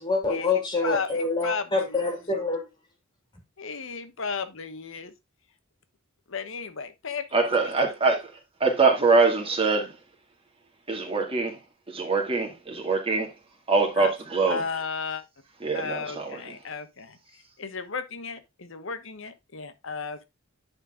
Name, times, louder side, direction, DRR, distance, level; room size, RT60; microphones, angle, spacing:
voice 1, 0.0-2.6, left 3 dB, 20° left, 2.5 m, -26 dB
voice 2, 0.8-2.2 3.6-5.1 6.3-7.2 7.6-7.7 8.0-8.1 14.0-14.1 14.5-15.2 15.7-17.2 17.6-20.2, left 5 dB, 65° left, 1.1 m, -34 dB
voice 3, 7.3-8.3 8.6-9.9 10.9-11.6 11.9-13.3 13.7-14.6 15.6-16.4, right 4 dB, 25° right, 2.4 m, -23 dB
10.5 x 4.4 x 3.7 m
head